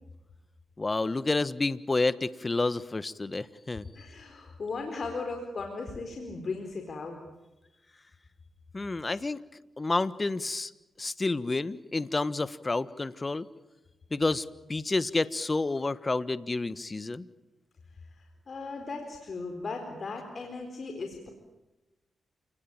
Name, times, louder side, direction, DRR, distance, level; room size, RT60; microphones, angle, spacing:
voice 1, 0.8-3.9 8.7-9.4 9.8-10.7 11.0-13.5 14.1-17.3, left 3 dB, 30° left, 16 dB, 1.3 m, -29 dB
voice 2, 3.9-7.2 17.9-21.3, left 3 dB, 55° left, 4 dB, 4.3 m, -37 dB
29.0 x 20.0 x 8.9 m, 1.1 s
cardioid pair, 55°, 0 cm